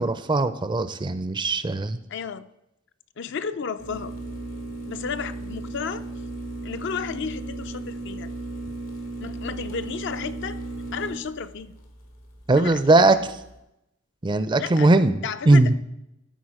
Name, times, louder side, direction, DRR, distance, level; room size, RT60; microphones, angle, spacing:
voice 1, 0.0-2.0 12.5-13.2 14.2-15.2 15.5-15.7, right 2 dB, 25° right, 12 dB, 0.4 m, -19 dB
voice 2, 2.1-2.5 3.2-4.1 4.9-6.1 6.6-8.3 9.2-10.6 10.9-11.7 12.6-13.1 14.6-14.9 15.2-15.6, left 6 dB, 60° left, 11 dB, 0.5 m, -33 dB
sound 1, 3.8-13.6, right 2 dB, 90° left, 2.1 m, -36 dB
13.0 x 4.6 x 4.8 m, 0.86 s
head